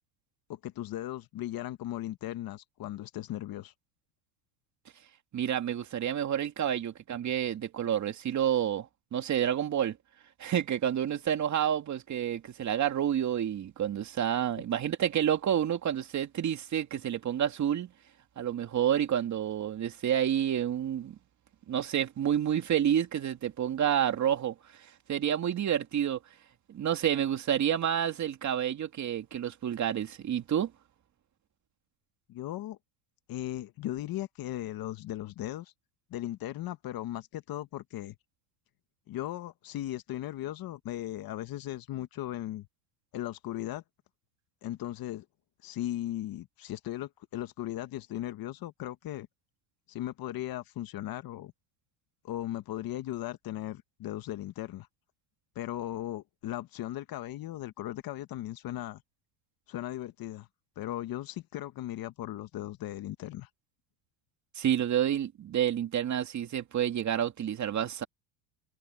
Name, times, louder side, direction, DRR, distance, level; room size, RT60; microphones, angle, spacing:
voice 1, 0.5-3.7 32.3-32.8 33.3-35.7 36.1-38.1 39.1-42.7 43.1-43.8 44.6-45.2 45.6-49.3 49.9-51.5 52.2-54.9 55.5-59.0 59.7-60.5 60.8-63.5, left 14 dB, 45° left, 1.5 m, -37 dB
voice 2, 5.3-10.0 10.4-17.9 18.4-21.2 21.7-24.6 25.1-26.2 26.7-30.7 64.6-68.0, right 10 dB, 35° right, 2.6 m, -29 dB
supercardioid pair, 120°, 49 cm